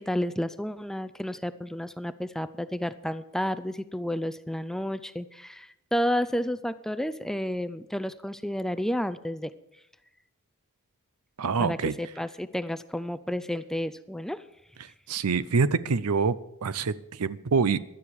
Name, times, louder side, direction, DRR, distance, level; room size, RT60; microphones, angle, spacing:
voice 1, 0.0-9.5 11.6-14.4, equal, ahead, 13 dB, 0.4 m, -31 dB
voice 2, 11.4-11.9 15.1-17.8, right 5 dB, 90° right, 16 dB, 0.6 m, -26 dB
17.0 x 11.5 x 4.8 m, 0.86 s
head